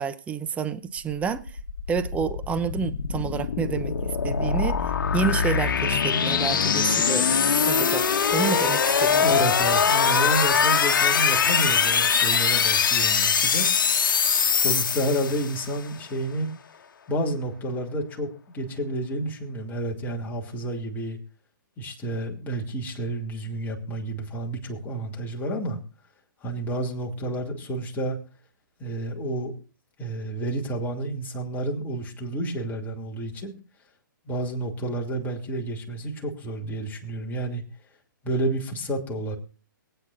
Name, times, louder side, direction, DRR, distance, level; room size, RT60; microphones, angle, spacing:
voice 1, 0.0-1.6 1.9-7.3 7.7-9.2, right 6 dB, 10° right, 0.7 m, -29 dB
sound 1, 1.1-15.7, left 6 dB, 70° left, 1.2 m, -22 dB
voice 2, 9.2-13.7 14.5-16.5 17.1-21.2 21.8-25.8 26.4-28.2 28.8-29.5 30.0-33.5 34.2-37.6 38.2-39.4, right 1 dB, 15° left, 2.8 m, -30 dB
23.5 x 9.0 x 2.5 m
hypercardioid pair, 135°, 11 cm